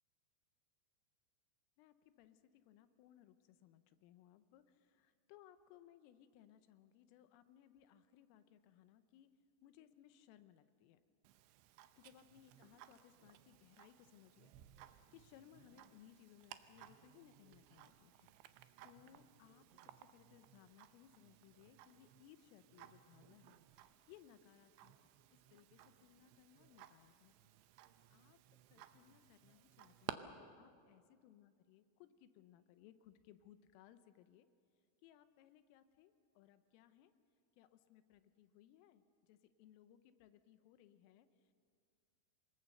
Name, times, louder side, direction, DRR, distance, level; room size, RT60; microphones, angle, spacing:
voice 1, 1.8-9.3 9.6-11.0 12.0-25.1 25.5-27.5 28.1-28.4 28.7-34.5 35.0-37.1 37.6-41.5, left 11 dB, 85° left, 11 dB, 3.4 m, -65 dB
Tick-tock, 11.2-30.1, right 14 dB, 80° right, 2.7 m, -58 dB
26.5 x 21.0 x 6.7 m, 2.2 s
omnidirectional pair, 5.9 m